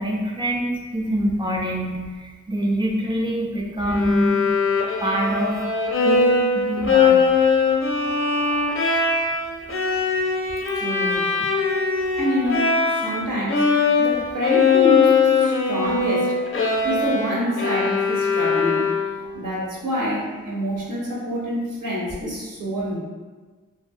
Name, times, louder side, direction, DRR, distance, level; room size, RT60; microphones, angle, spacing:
voice 1, 0.0-4.4 5.0-5.5 6.0-7.2 11.0-11.1, equal, 15° right, -2 dB, 0.4 m, -25 dB
Bowed string instrument, 3.9-13.2 13.5-19.3, left 4 dB, 40° left, 0.4 m, -21 dB
voice 2, 10.7-11.2 12.2-16.4 16.8-18.9 19.2-23.0, equal, 70° right, -5 dB, 0.8 m, -26 dB
2.6 x 2.4 x 2.6 m, 1.4 s
wide cardioid pair, 65°, 33 cm